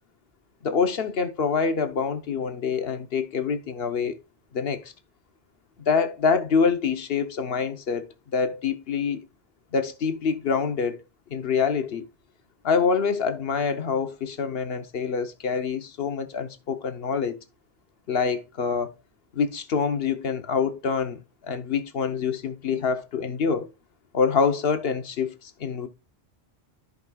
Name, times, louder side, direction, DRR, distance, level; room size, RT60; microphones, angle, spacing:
voice 1, 0.6-4.2 4.5-4.9 5.8-8.1 8.3-9.2 9.7-11.0 11.3-12.0 12.6-17.4 18.1-18.9 19.3-23.7 24.1-25.9, left 5 dB, 60° left, 1.1 m, -26 dB
13.5 x 5.3 x 2.3 m
omnidirectional pair, 1.2 m